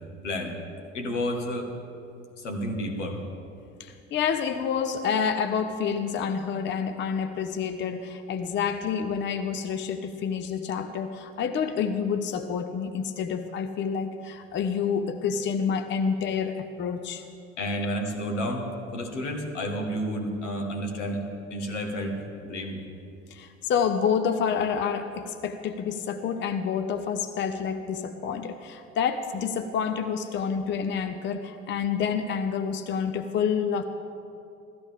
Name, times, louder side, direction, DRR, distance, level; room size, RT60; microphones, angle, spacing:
voice 1, 0.2-0.5 0.9-1.7 2.4-3.2 17.6-21.2 21.5-22.8, equal, 75° left, 2 dB, 1.7 m, -31 dB
voice 2, 3.8-17.2 23.3-33.8, left 6 dB, 30° left, 9 dB, 0.7 m, -28 dB
16.5 x 13.5 x 3.6 m, 2.6 s
figure-of-eight pair, 65°, 36 cm